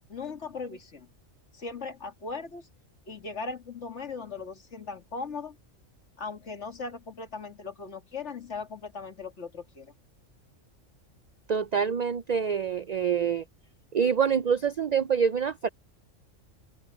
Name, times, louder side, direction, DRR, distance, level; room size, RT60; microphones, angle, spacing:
voice 1, 0.1-1.1 1.5-2.7 3.1-5.6 6.2-9.9, left 4 dB, 60° left, 2.5 m, -38 dB
voice 2, 11.5-13.4 13.9-15.7, right 7 dB, 80° right, 0.3 m, -26 dB
open air
omnidirectional pair, 1.3 m